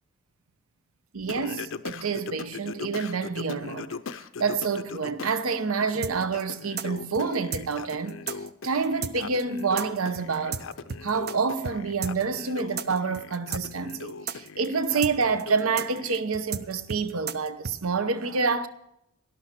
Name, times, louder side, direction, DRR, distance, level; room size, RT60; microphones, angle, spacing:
voice 1, 1.1-4.0 4.4-8.2 8.6-10.6 11.0-18.7, right 4 dB, 80° right, 0.8 m, -28 dB
Singing, 1.3-5.4 5.8-16.2, left 5 dB, 65° left, 0.5 m, -39 dB
sound 1, 6.0-11.4 11.6-11.8 12.0-17.8, right 6 dB, 45° right, 0.5 m, -34 dB
12.0 x 12.0 x 4.3 m
head